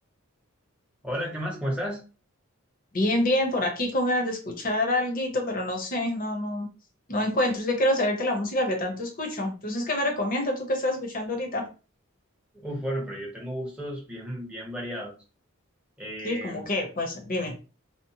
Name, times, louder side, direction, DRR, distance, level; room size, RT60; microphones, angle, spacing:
voice 1, 1.0-2.0 12.5-15.1 16.0-16.7, equal, 5° right, -3 dB, 0.7 m, -33 dB
voice 2, 2.9-6.7 7.1-11.7 16.2-17.6, left 1 dB, 40° left, 3 dB, 0.7 m, -27 dB
2.8 x 2.0 x 2.6 m, 0.35 s
head